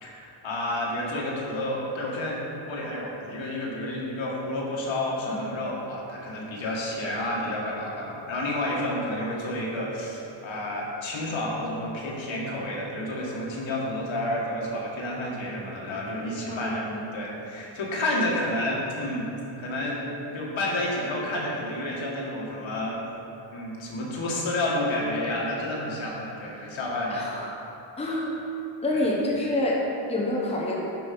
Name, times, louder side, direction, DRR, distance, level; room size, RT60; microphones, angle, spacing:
voice 1, 0.0-19.3 19.6-20.0 20.3-23.0 23.5-27.2 28.9-29.0, left 1 dB, 70° left, -4 dB, 2.1 m, -30 dB
voice 2, 16.5-17.1 27.1-27.6 28.0-28.4 28.8-30.8, left 1 dB, 15° left, -3 dB, 1.0 m, -28 dB
10.5 x 5.2 x 5.4 m, 3.0 s
wide cardioid pair, 170°, 47 cm